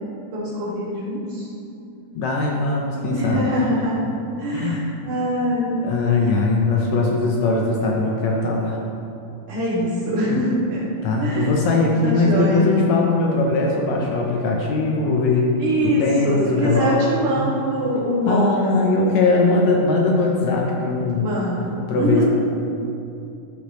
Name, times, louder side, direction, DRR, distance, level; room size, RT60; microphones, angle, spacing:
voice 1, 0.3-1.5 3.1-4.0 4.4-5.7 9.5-10.8 11.2-11.6 11.9-12.8 15.6-18.8 21.2-22.3, equal, 70° right, -8 dB, 3.4 m, -23 dB
voice 2, 2.2-3.5 4.5-4.9 5.8-8.8 11.0-15.5 15.8-17.5 18.3-21.3 21.9-22.2, left 3 dB, 75° left, -1 dB, 1.8 m, -20 dB
12.5 x 5.1 x 3.1 m, 2.7 s
omnidirectional pair, 3.6 m